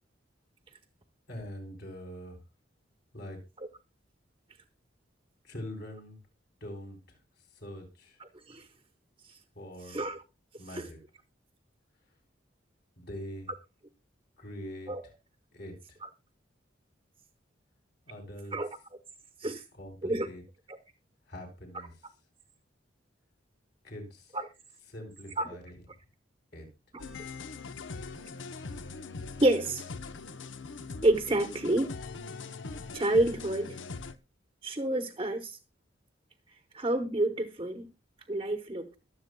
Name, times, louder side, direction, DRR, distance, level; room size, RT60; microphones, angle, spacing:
voice 1, 1.3-2.4 3.1-3.4 5.4-6.2 6.6-7.2 7.5-8.2 9.5-10.1 10.6-11.0 13.0-13.5 14.4-14.9 15.5-16.0 18.1-18.6 19.7-20.4 21.3-22.1 23.8-24.4 24.9-25.8 26.5-26.7, left 1 dB, 55° left, 2 dB, 3.8 m, -43 dB
voice 2, 9.9-10.2 10.7-10.9 14.9-15.0 16.0-16.1 18.5-18.7 19.4-19.6 20.0-20.3 20.7-20.8 24.3-24.4 25.4-25.5 29.4-29.8 31.0-31.9 32.9-33.8 34.6-35.6 36.7-37.9 38.3-39.0, right 1 dB, 25° right, 7 dB, 0.9 m, -28 dB
sound 1, 27.0-34.2, left 4 dB, 85° left, 0.8 m, -41 dB
23.0 x 7.8 x 2.2 m, 0.25 s
head